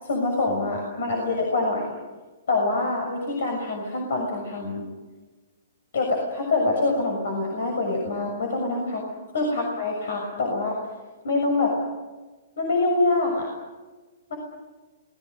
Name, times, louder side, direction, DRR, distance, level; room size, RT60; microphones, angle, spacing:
voice 1, 0.0-2.0 2.5-4.9 5.9-9.0 9.3-10.8 11.2-11.7 12.6-13.5 14.3-14.4, left 2 dB, 75° left, 1 dB, 6.7 m, -25 dB
28.0 x 21.0 x 6.7 m, 1.3 s
hypercardioid pair, 155°, 0 cm